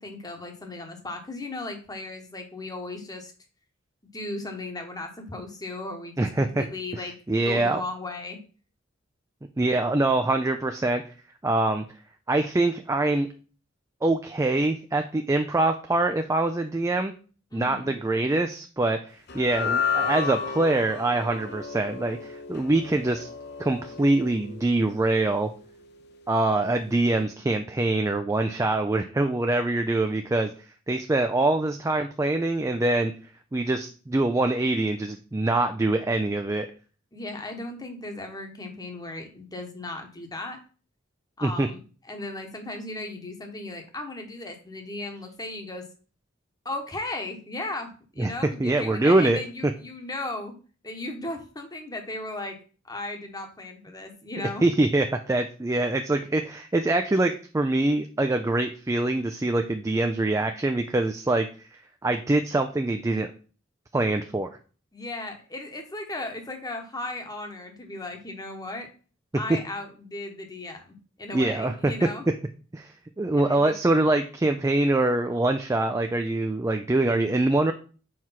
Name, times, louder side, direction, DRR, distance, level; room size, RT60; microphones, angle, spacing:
voice 1, 0.0-3.3 4.1-8.4 9.7-9.8 17.5-17.9 37.1-40.6 41.4-41.8 42.1-45.9 46.6-50.6 50.8-52.6 52.8-54.6 64.9-68.9 69.3-72.3 73.4-73.7, left 2 dB, 20° left, 4 dB, 1.2 m, -36 dB
voice 2, 6.2-6.6 6.9-7.0 7.3-7.8 9.6-11.0 11.4-11.8 12.3-13.3 14.0-17.1 17.5-23.3 23.6-25.5 26.3-30.5 30.9-33.1 33.5-36.7 41.4-41.7 48.2-48.3 48.6-49.7 54.6-61.5 62.0-63.3 63.9-64.5 71.3-71.9 72.7-77.7, right 2 dB, 15° right, 6 dB, 0.4 m, -24 dB
sound 1, 19.3-25.7, left 6 dB, 55° left, 0.9 m, -32 dB
4.7 x 4.6 x 5.7 m, 0.38 s
head